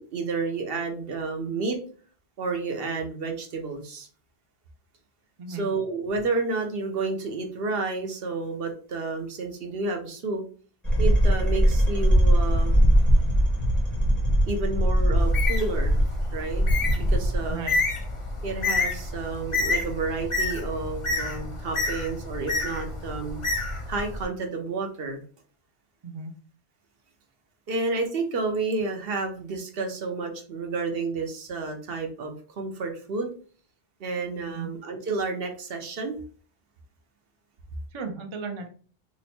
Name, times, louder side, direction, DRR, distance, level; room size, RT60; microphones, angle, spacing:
voice 1, 0.0-1.8 2.4-4.1 5.5-10.4 11.0-12.8 13.6-13.7 14.5-16.0 16.3-16.6 17.0-17.7 18.4-23.4 23.9-25.2 27.7-33.3 34.0-36.2, right 3 dB, 60° right, 4 dB, 0.8 m, -30 dB
sound 1, 10.8-17.6, equal, ahead, 0.9 m, -21 dB
Bird, 15.2-24.2, left 3 dB, 35° left, 0.6 m, -29 dB
voice 2, 37.9-38.7, right 5 dB, 40° right, 4 dB, 0.4 m, -35 dB
2.9 x 2.1 x 4.1 m, 0.42 s
omnidirectional pair, 1.1 m